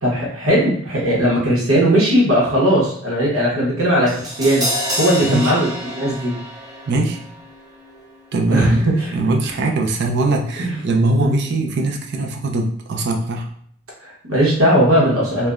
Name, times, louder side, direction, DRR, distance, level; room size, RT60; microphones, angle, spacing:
voice 1, 0.0-6.4 8.5-9.1 10.6-10.8 11.2-11.4 14.0-15.5, equal, 85° right, -5 dB, 0.9 m, -18 dB
Crash cymbal, 4.1-10.2 10.5-10.6, equal, 20° right, 0.7 m, -30 dB
voice 2, 5.2-5.5 6.9-7.2 8.3-13.5, right 2 dB, 55° right, 2 dB, 0.4 m, -21 dB
3.2 x 2.0 x 2.4 m, 0.63 s
head